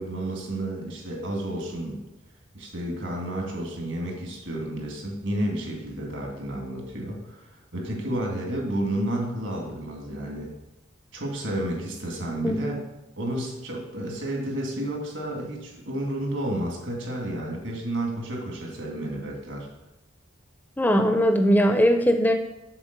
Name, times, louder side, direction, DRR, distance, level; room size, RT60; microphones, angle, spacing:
voice 1, 0.0-2.0 2.5-10.5 11.1-12.8 13.2-19.7, right 1 dB, 75° right, 0 dB, 2.1 m, -31 dB
voice 2, 20.8-22.3, equal, 10° left, 6 dB, 0.4 m, -20 dB
7.1 x 4.4 x 6.6 m, 0.95 s
head